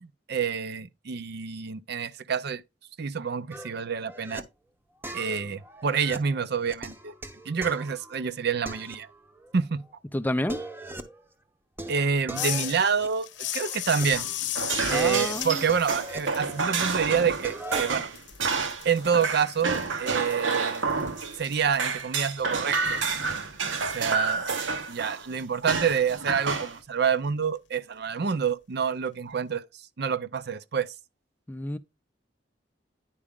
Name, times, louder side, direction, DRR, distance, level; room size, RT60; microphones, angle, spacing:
voice 1, 0.0-2.6 3.0-4.4 5.1-7.1 7.5-9.1 9.5-9.8 11.9-13.3 13.5-14.3 14.9-18.1 18.8-20.8 21.4-23.0 23.9-24.4 24.9-29.6 30.0-30.9, right 6 dB, 60° right, 0.5 m, -27 dB
sound 1, 3.5-4.4 5.0-8.3 8.7-9.6 9.8-9.9 10.3-11.2 11.8-14.4 14.7-16.8 17.1-18.0, right 1 dB, 10° right, 0.7 m, -41 dB
voice 2, 10.1-10.6 14.9-15.6 31.5-31.8, left 1 dB, 10° left, 0.4 m, -29 dB
sound 2, 12.3-17.9 18.2-23.0, left 13 dB, 70° left, 0.7 m, -36 dB
sound 3, 14.0-21.5 21.8-25.2 25.7-26.8, right 4 dB, 90° right, 1.1 m, -29 dB
9.9 x 4.8 x 3.6 m
head